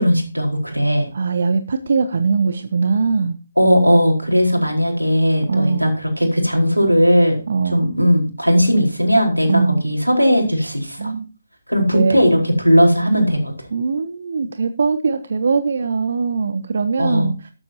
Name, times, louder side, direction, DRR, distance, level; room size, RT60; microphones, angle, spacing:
voice 1, 0.0-1.1 3.6-7.4 7.7-11.1 11.7-13.5 17.0-17.3, equal, 85° right, 2 dB, 4.4 m, -17 dB
voice 2, 1.1-3.4 5.5-5.9 7.5-7.9 9.5-9.8 11.0-11.3 11.9-12.5 13.7-17.5, right 4 dB, 50° right, 10 dB, 0.8 m, -21 dB
13.0 x 12.0 x 2.8 m, 0.33 s
figure-of-eight pair, 145°, 0 cm